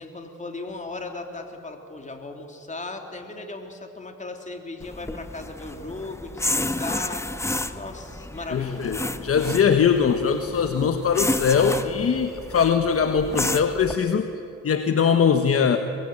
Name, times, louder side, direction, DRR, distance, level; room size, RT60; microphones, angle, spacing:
voice 1, 0.0-7.3 7.7-8.9 12.0-12.2, left 2 dB, 25° left, 4 dB, 3.4 m, -37 dB
sound 1, 4.8-13.9, left 2 dB, 10° left, 1.0 m, -31 dB
voice 2, 8.5-14.3 14.6-15.8, left 6 dB, 50° left, 7 dB, 1.4 m, -21 dB
24.0 x 20.5 x 8.9 m, 2.9 s
cardioid pair, 90°, 30 cm